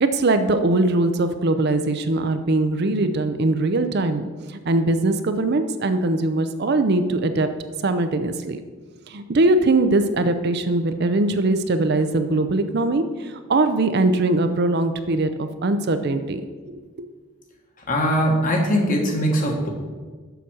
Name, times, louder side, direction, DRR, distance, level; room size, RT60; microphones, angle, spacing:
voice 1, 0.0-7.5 7.8-8.6 9.1-16.4 16.7-16.8, right 2 dB, 50° right, 9 dB, 0.5 m, -21 dB
voice 2, 17.9-19.7, equal, 40° left, 0 dB, 1.5 m, -21 dB
7.0 x 5.9 x 6.2 m, 1.4 s
head